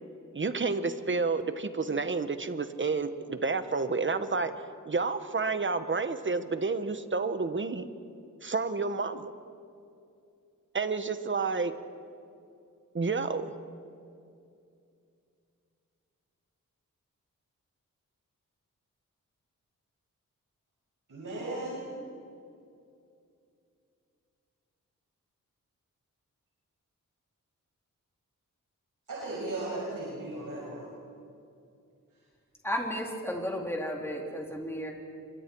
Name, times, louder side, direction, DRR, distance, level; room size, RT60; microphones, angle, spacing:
voice 1, 0.3-4.5 4.8-7.9 8.4-9.3 10.7-11.8 12.9-13.5, right 4 dB, 35° right, 10 dB, 1.2 m, -30 dB
voice 2, 21.1-21.8 29.1-30.8, right 2 dB, 75° right, -6 dB, 6.2 m, -36 dB
voice 3, 32.6-34.9, equal, 5° left, 0 dB, 3.5 m, -33 dB
28.5 x 24.5 x 4.7 m, 2.5 s
wide cardioid pair, 105°, 32 cm